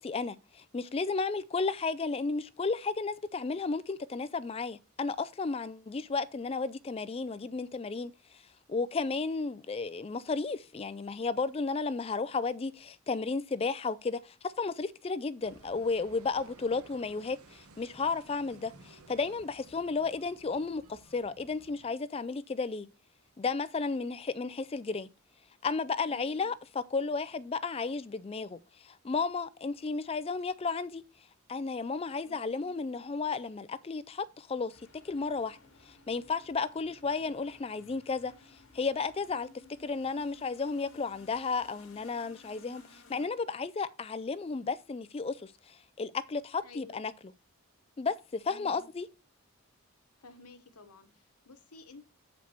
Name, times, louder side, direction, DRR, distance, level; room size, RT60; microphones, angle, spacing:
voice 1, 0.0-8.4 8.7-22.9 23.4-25.1 25.6-26.6 26.9-31.0 31.5-35.6 35.8-38.3 38.7-39.5 39.8-47.1 48.0-49.1, left 4 dB, 25° left, 0.3 m, -33 dB
sound 1, 15.4-21.9, right 3 dB, 80° right, 1.2 m, -56 dB
voice 2, 26.0-26.5 32.2-32.7 46.6-47.0 48.5-48.9 50.2-52.0, left 3 dB, 90° left, 1.2 m, -53 dB
sound 2, 34.7-43.3, left 3 dB, 70° left, 1.7 m, -58 dB
8.0 x 5.2 x 4.4 m
head